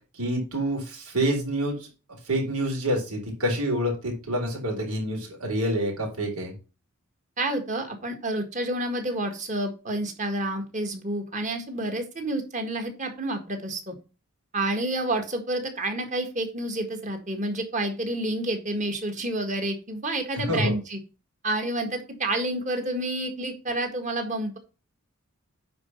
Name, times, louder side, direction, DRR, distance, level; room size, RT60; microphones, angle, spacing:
voice 1, 0.1-1.9 2.2-6.5 20.3-20.7, equal, 80° right, 1 dB, 3.9 m, -27 dB
voice 2, 7.4-13.9 14.5-21.0 21.4-24.6, right 1 dB, 35° right, 5 dB, 1.7 m, -29 dB
9.7 x 4.2 x 5.6 m, 0.32 s
head